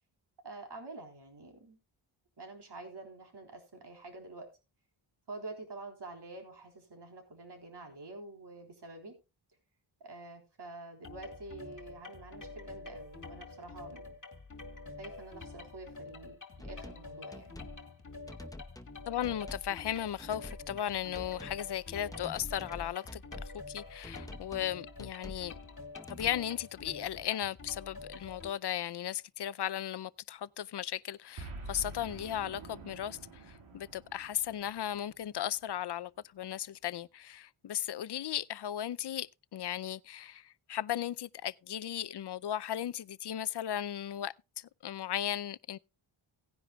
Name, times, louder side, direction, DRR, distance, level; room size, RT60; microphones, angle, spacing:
voice 1, 0.4-1.8 2.4-4.5 5.3-9.1 10.0-14.1 15.0-17.6, right 2 dB, 55° right, 3.7 m, -47 dB
sound 1, 11.0-28.5, left 3 dB, 35° left, 1.9 m, -47 dB
sound 2, 16.6-17.0 17.3-17.8 18.3-19.0 19.2-19.7 20.2-20.9 21.1-21.6 22.1-23.5 24.0-24.7 25.0-25.5 25.9-26.3, left 1 dB, 5° left, 0.9 m, -47 dB
voice 2, 19.1-25.5 26.1-45.8, left 11 dB, 55° left, 0.5 m, -36 dB
Boom, 31.4-35.8, right 2 dB, 80° right, 2.2 m, -47 dB
17.5 x 10.0 x 2.3 m
wide cardioid pair, 100°, 50 cm